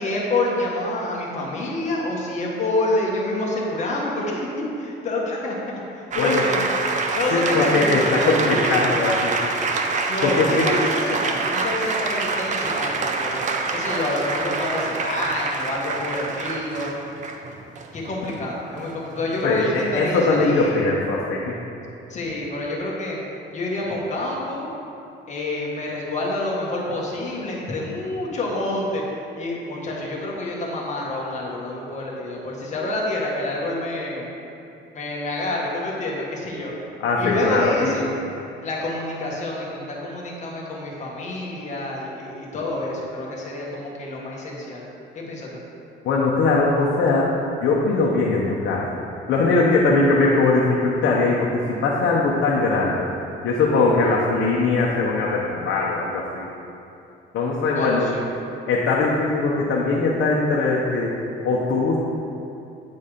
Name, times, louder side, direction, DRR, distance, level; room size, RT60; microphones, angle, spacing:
voice 1, 0.0-5.8 6.1-6.8 7.1-9.0 10.1-13.3 13.7-16.9 17.9-20.8 22.1-23.2 23.5-24.7 25.3-29.0 29.4-34.3 34.9-36.7 37.2-38.1 38.6-44.8 45.1-45.6 57.7-58.3, left 2 dB, 40° left, -3 dB, 1.5 m, -27 dB
sound 1, 6.1-20.6, right 4 dB, 40° right, 0.6 m, -26 dB
voice 2, 7.3-9.3 10.2-10.7 19.4-21.6 37.0-38.0 46.0-47.3 47.6-48.9 49.3-53.1 53.4-56.5 57.3-58.1 58.7-61.1 61.4-62.0, left 3 dB, 75° left, -4 dB, 0.9 m, -20 dB
8.6 x 4.2 x 5.0 m, 2.8 s
cardioid pair, 140°, 19 cm